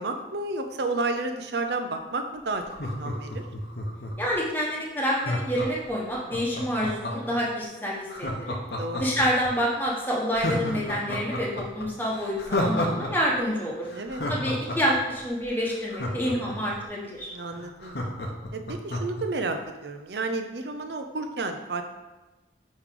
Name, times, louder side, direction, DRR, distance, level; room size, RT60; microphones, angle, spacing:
voice 1, 0.0-3.4 8.7-9.1 13.9-14.2 17.3-18.0 18.5-21.8, right 3 dB, 70° right, 6 dB, 0.6 m, -31 dB
Laughter, 2.6-4.3 5.2-7.4 8.1-9.5 9.9-10.0 10.3-13.1 13.4-13.5 13.8-16.8 17.2-17.3 17.5-19.2 19.6-19.7, left 1 dB, 65° left, 0.9 m, -31 dB
voice 2, 4.2-8.6 9.0-13.9 14.3-17.3, equal, 10° left, -5 dB, 1.1 m, -28 dB
8.6 x 3.1 x 3.8 m, 1.1 s
head